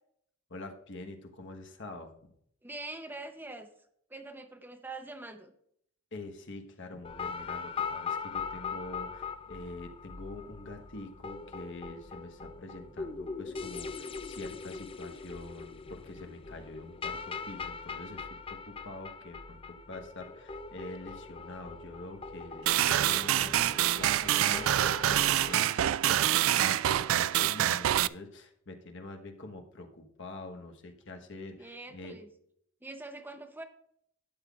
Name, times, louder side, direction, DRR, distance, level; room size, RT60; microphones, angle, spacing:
voice 1, 0.5-2.1 6.1-32.2, left 2 dB, 60° left, 4 dB, 1.3 m, -45 dB
voice 2, 2.6-3.7 4.1-5.5 31.6-32.3 32.8-33.6, right 2 dB, 10° right, 5 dB, 0.7 m, -43 dB
sound 1, 7.0-25.5, left 5 dB, 25° left, 0.5 m, -41 dB
sound 2, 22.7-28.1, right 12 dB, 70° right, 0.3 m, -26 dB
12.0 x 8.9 x 2.4 m, 0.69 s
head